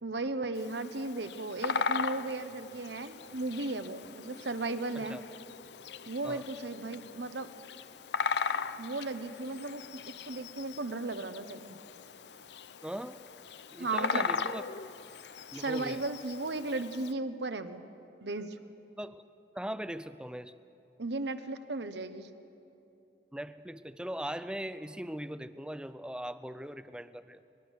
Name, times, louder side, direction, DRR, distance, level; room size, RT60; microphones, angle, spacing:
voice 1, 0.0-5.2 6.1-7.5 8.5-11.8 13.8-14.3 15.5-17.8 18.2-18.6 21.0-22.3, right 2 dB, 85° right, 10 dB, 1.1 m, -36 dB
Bird vocalization bird call bird song, 0.5-17.1, left 5 dB, 80° left, 0.6 m, -38 dB
voice 2, 12.8-13.2 13.7-14.8 15.5-16.0 19.0-19.2 19.6-20.5 23.3-27.4, equal, 5° right, 13 dB, 0.5 m, -40 dB
24.0 x 21.0 x 6.5 m, 2.9 s
head